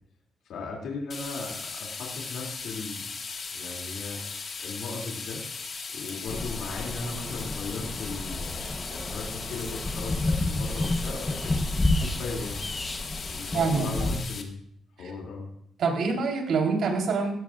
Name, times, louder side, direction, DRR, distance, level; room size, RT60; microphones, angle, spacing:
voice 1, 0.4-3.1 3.5-5.4 5.9-11.5 12.0-12.6 13.3-14.6 15.0-15.5, left 3 dB, 90° left, -2 dB, 2.8 m, -37 dB
sound 1, 1.1-14.4, left 4 dB, 40° left, 1.8 m, -38 dB
sound 2, 6.3-14.2, left 2 dB, 20° left, 1.1 m, -30 dB
voice 2, 13.5-14.1 15.0-15.1 15.8-17.3, right 4 dB, 70° right, 0 dB, 3.9 m, -26 dB
18.0 x 16.0 x 2.5 m, 0.70 s
cardioid pair, 130°, 0 cm